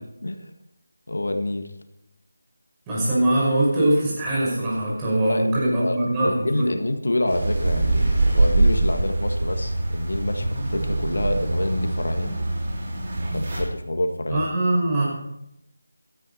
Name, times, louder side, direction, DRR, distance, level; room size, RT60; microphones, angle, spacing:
voice 1, 1.1-1.7 5.3-12.3 13.3-14.5, left 1 dB, 65° left, 6 dB, 1.7 m, -27 dB
voice 2, 2.9-6.7 14.3-15.1, right 1 dB, 10° right, -7 dB, 5.7 m, -22 dB
sound 1, 7.3-13.6, right 2 dB, 35° right, 5.0 m, -23 dB
16.0 x 13.0 x 4.3 m, 0.82 s
figure-of-eight pair, 165°, 0 cm